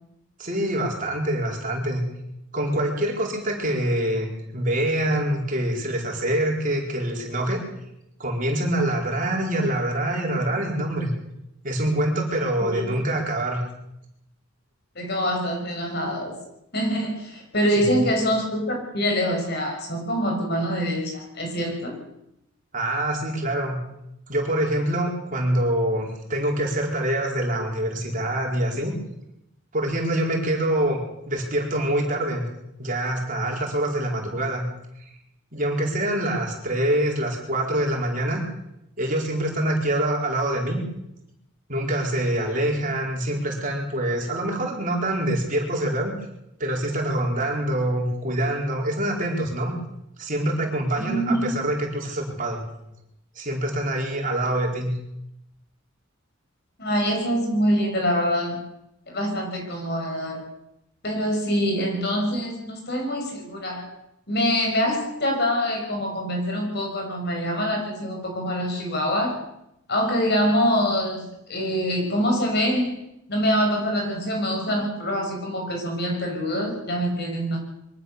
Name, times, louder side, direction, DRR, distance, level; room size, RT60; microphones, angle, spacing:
voice 1, 0.4-2.0 2.5-7.6 8.2-11.1 11.6-13.6 17.8-18.0 22.7-23.8 24.3-28.9 29.7-31.0 31.3-32.5 32.8-34.6 35.5-38.4 39.0-40.8 41.7-46.1 46.6-49.7 50.2-52.6 53.4-54.9, right 1 dB, 40° right, 0 dB, 4.6 m, -25 dB
voice 2, 15.0-16.4 16.7-21.9 51.0-51.6 56.8-58.6 59.1-60.4 61.0-63.9 64.3-69.4 69.9-73.0 73.3-77.6, equal, 50° left, 2 dB, 6.1 m, -25 dB
23.5 x 16.0 x 6.9 m, 0.83 s
head